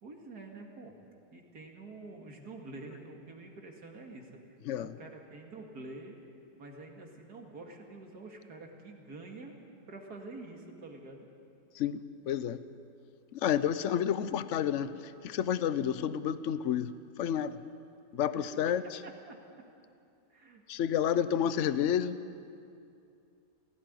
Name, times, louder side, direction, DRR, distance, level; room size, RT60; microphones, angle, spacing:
voice 1, 0.0-1.0 1.3-6.2 6.6-9.5 9.9-11.3 19.0-19.4 20.3-20.6 21.1-21.3, right 2 dB, 65° right, 1 dB, 2.6 m, -47 dB
voice 2, 4.6-5.0 11.7-12.6 13.3-17.6 18.1-19.0 20.7-22.2, left 9 dB, 60° left, 14 dB, 0.9 m, -30 dB
17.0 x 16.5 x 9.6 m, 2.5 s
omnidirectional pair, 1.8 m